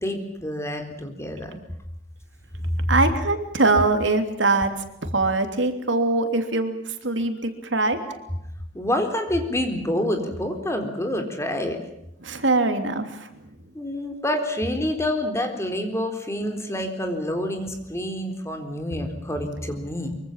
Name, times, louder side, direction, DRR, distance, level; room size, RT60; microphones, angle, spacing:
voice 1, 0.0-1.5 2.5-2.9 8.0-8.2 8.7-11.8 13.7-20.1, left 1 dB, 15° left, 5 dB, 3.9 m, -27 dB
voice 2, 2.9-4.7 5.1-8.0 12.2-13.4, right 2 dB, 80° right, 7 dB, 3.1 m, -22 dB
24.5 x 24.0 x 7.4 m, 0.79 s
head